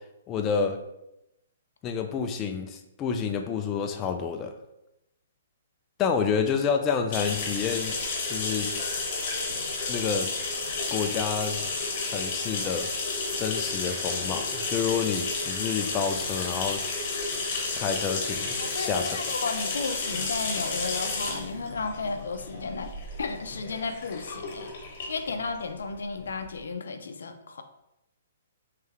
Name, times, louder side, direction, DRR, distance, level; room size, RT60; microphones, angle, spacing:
voice 1, 0.3-0.8 1.8-4.5 6.0-8.0 8.3-8.7 9.9-10.3 10.9-11.6 12.0-12.9 13.4-16.8 17.8-19.2, left 6 dB, 20° left, 5 dB, 0.3 m, -29 dB
sound 1, 7.1-26.5, left 3 dB, 40° left, 1.0 m, -32 dB
voice 2, 18.6-22.9 23.2-24.7 25.1-27.6, left 4 dB, 85° left, 7 dB, 0.5 m, -33 dB
3.4 x 3.2 x 3.4 m, 0.87 s
hypercardioid pair, 155°, 0 cm